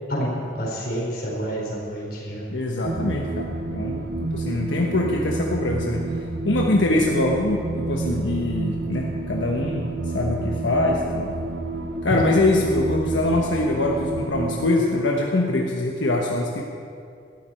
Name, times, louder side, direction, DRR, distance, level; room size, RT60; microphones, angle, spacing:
voice 1, 0.1-2.5, equal, 50° left, -4 dB, 4.4 m, -28 dB
voice 2, 2.5-6.0 6.4-11.3 12.0-16.6, left 2 dB, 85° left, -1 dB, 1.3 m, -23 dB
sound 1, 2.8-14.7, right 2 dB, 80° right, 1.0 m, -29 dB
18.0 x 13.0 x 4.5 m, 2.4 s
head